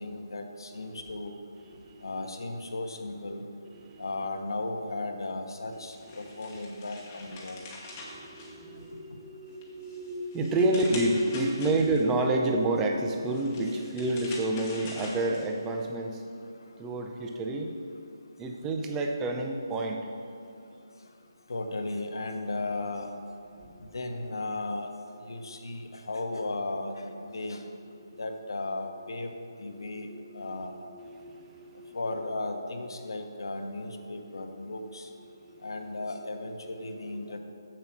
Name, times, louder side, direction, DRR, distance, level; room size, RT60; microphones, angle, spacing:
voice 1, 0.0-1.3 2.0-3.4 4.0-7.6 21.5-23.1 23.8-24.9 25.3-27.6 28.2-29.3 29.6-30.7 31.9-35.1 35.6-37.4, left 2 dB, 75° left, 5 dB, 1.1 m, -35 dB
sound 1, 5.7-9.1 9.5-12.2 13.1-15.8, left 2 dB, 20° left, 1.2 m, -45 dB
voice 2, 7.9-16.3 16.8-17.7 18.4-20.1 23.6-23.7 29.8-32.0 35.3-35.7 36.8-37.4, right 2 dB, 10° right, 3 dB, 0.5 m, -30 dB
7.5 x 7.3 x 5.9 m, 2.6 s
hypercardioid pair, 170°, 2 cm